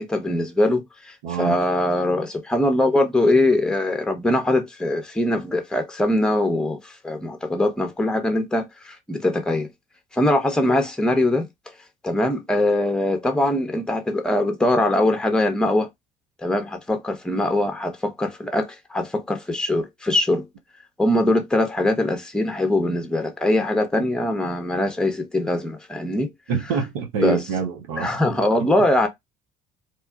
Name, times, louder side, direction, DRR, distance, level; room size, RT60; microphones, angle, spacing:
voice 1, 0.0-9.7 10.1-11.5 12.0-15.9 16.4-20.5 21.0-26.3 27.2-27.4 28.0-29.1, left 1 dB, 5° left, 0.8 m, -22 dB
voice 2, 1.2-1.6 26.5-28.1, right 5 dB, 85° right, 0.6 m, -25 dB
2.9 x 2.2 x 2.3 m
hypercardioid pair, 70°, 17 cm